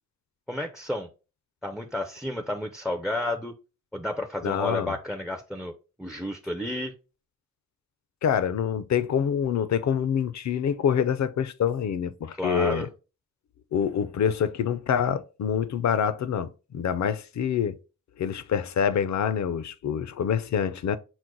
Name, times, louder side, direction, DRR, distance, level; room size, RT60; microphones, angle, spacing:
voice 1, 0.5-1.1 1.6-3.5 3.9-5.7 6.0-6.9 12.4-12.9, left 1 dB, ahead, 0.4 m, -31 dB
voice 2, 4.4-4.9 8.2-12.9 13.7-17.8 18.2-21.0, left 8 dB, 55° left, 0.5 m, -26 dB
6.1 x 2.1 x 3.8 m
cardioid pair, 80°, 34 cm